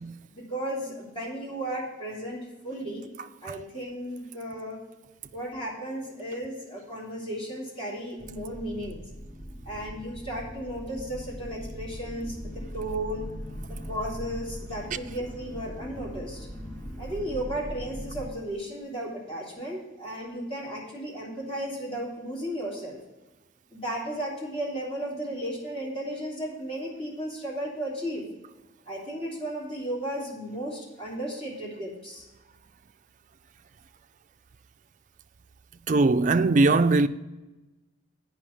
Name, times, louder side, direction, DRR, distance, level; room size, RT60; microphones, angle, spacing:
voice 1, 0.3-3.1 3.4-4.8 5.3-9.0 9.6-13.3 13.9-16.5 17.0-23.0 23.7-28.3 28.9-32.3, right 1 dB, 30° left, 3.2 m, -34 dB
sound 1, 8.2-18.3, equal, 15° left, 0.9 m, -40 dB
voice 2, 35.9-37.1, right 3 dB, 40° right, 0.4 m, -20 dB
8.5 x 5.6 x 7.2 m
head